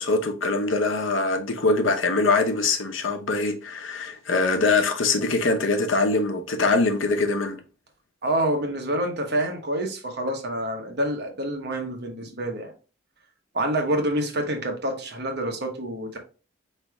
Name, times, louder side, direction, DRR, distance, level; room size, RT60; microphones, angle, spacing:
voice 1, 0.0-7.6, left 3 dB, 90° left, 0.8 m, -23 dB
voice 2, 8.2-12.7 13.5-16.2, right 1 dB, 60° right, 1.1 m, -27 dB
4.7 x 3.3 x 3.2 m
head